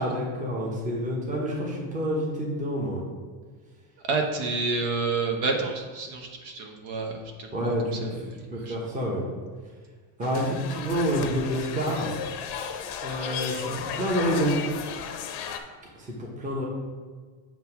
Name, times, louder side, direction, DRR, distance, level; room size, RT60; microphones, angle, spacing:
voice 1, 0.0-3.0 7.5-8.0 8.5-9.2 10.2-12.1 13.0-14.5 16.0-16.6, equal, 15° right, -3 dB, 1.1 m, -28 dB
voice 2, 4.0-8.8 10.3-10.4, right 3 dB, 55° right, 3 dB, 1.3 m, -30 dB
sound 1, 10.2-15.6, left 7 dB, 60° left, 0.8 m, -34 dB
7.9 x 3.0 x 5.9 m, 1.5 s
cardioid pair, 155°, 47 cm